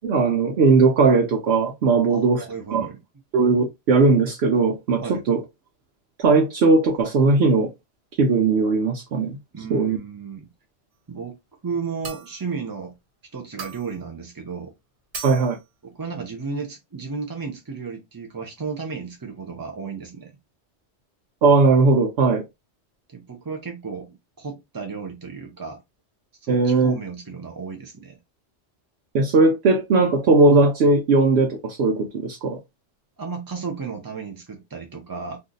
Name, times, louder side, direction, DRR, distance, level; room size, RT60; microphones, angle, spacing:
voice 1, 0.0-2.4 2.7-2.9 3.3-5.4 6.2-7.7 8.2-9.4 9.7-10.0 15.2-15.6 21.4-22.4 26.5-26.9 29.1-32.6, right 3 dB, 70° right, 0.9 m, -18 dB
voice 2, 2.1-3.0 5.0-5.2 9.5-10.5 11.1-11.4 11.6-13.0 13.3-14.7 15.8-20.3 23.1-25.8 26.4-28.2 33.2-35.4, right 5 dB, 35° right, 0.3 m, -33 dB
sound 1, 12.0-12.5 13.6-14.0 15.1-15.6, right 5 dB, 90° right, 1.2 m, -37 dB
2.6 x 2.4 x 3.7 m
omnidirectional pair, 1.2 m